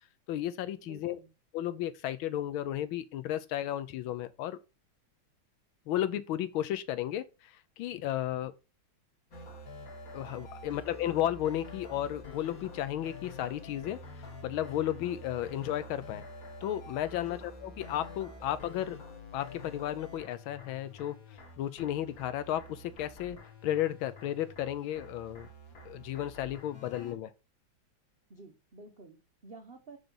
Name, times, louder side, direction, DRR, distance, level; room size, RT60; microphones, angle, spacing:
voice 1, 0.3-1.2 1.5-4.6 5.9-8.5 10.1-14.0 14.4-16.2 16.6-19.0 19.3-21.2 21.6-25.5 25.8-27.3, left 12 dB, 80° left, 1.4 m, -33 dB
voice 2, 0.8-1.3 10.6-10.9 17.2-17.4 28.3-30.0, right 3 dB, 65° right, 0.5 m, -52 dB
sound 1, 9.3-27.1, left 2 dB, 45° left, 1.7 m, -48 dB
6.0 x 5.0 x 5.3 m
omnidirectional pair, 2.3 m